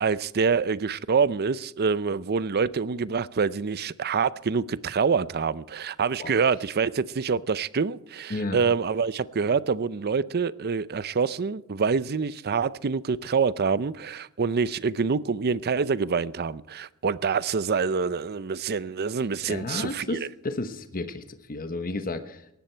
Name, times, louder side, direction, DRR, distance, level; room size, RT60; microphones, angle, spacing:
voice 1, 0.0-20.2, right 5 dB, 45° right, 0.5 m, -26 dB
voice 2, 19.5-22.5, left 2 dB, 40° left, 1.1 m, -32 dB
18.5 x 14.0 x 4.5 m
head